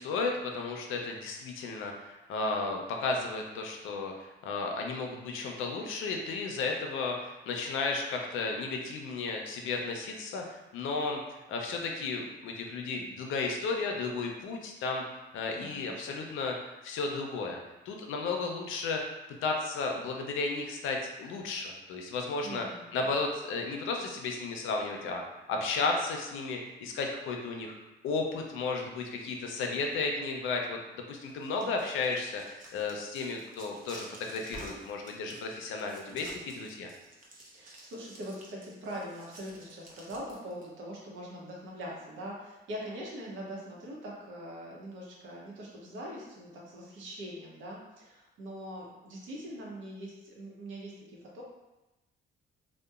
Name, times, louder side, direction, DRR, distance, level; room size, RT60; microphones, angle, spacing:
voice 1, 0.0-15.0 15.3-17.6 17.9-19.1 19.4-22.7 22.9-25.2 25.5-27.7 28.0-30.8 31.1-36.9, left 3 dB, 85° left, 2 dB, 0.5 m, -33 dB
voice 2, 15.6-16.0 22.4-23.1 31.6-31.7 37.5-51.4, equal, 75° right, -3 dB, 0.8 m, -42 dB
sound 1, 31.3-40.7, right 1 dB, 45° right, 0.6 m, -51 dB
2.8 x 2.1 x 2.3 m, 1.0 s
cardioid pair, 90°, 20 cm